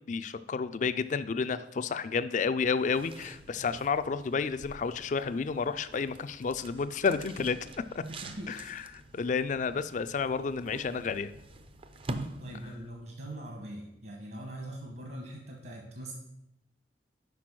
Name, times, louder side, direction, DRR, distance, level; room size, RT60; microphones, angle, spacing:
voice 1, 0.1-7.6 7.9-8.0 8.5-8.8 9.1-11.3, left 5 dB, 40° left, 13 dB, 0.3 m, -31 dB
sound 1, 2.7-13.0, right 2 dB, 30° right, 0.4 m, -46 dB
voice 2, 8.0-8.6 12.4-16.1, right 1 dB, 60° right, 1 dB, 1.2 m, -42 dB
6.0 x 5.1 x 6.0 m, 0.88 s
head